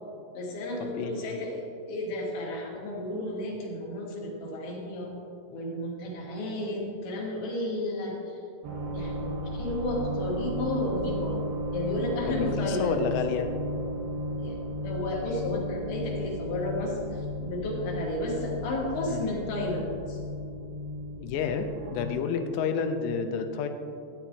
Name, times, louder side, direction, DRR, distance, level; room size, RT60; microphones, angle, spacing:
voice 1, 0.3-5.1 5.5-8.4 8.9-11.4 11.7-13.1 14.4-20.2, left 1 dB, 60° left, -3 dB, 3.0 m, -32 dB
voice 2, 0.9-1.4 12.3-13.5 19.1-19.2 21.2-23.7, left 6 dB, 85° left, 6 dB, 3.1 m, -30 dB
sound 1, 8.6-22.1, equal, 70° right, 2.4 m, -34 dB
14.0 x 10.0 x 3.0 m, 2.7 s
omnidirectional pair, 5.8 m